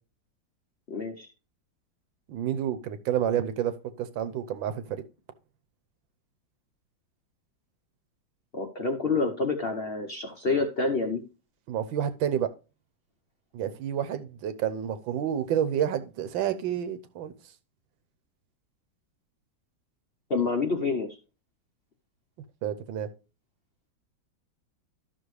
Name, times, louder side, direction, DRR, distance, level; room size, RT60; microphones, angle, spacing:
voice 1, 0.9-1.3 8.5-11.2 20.3-21.2, left 4 dB, 50° left, 0.7 m, -28 dB
voice 2, 2.3-5.0 11.7-12.5 13.5-17.3 22.6-23.1, right 9 dB, 90° right, 1.6 m, -29 dB
12.5 x 6.2 x 3.2 m
omnidirectional pair, 2.1 m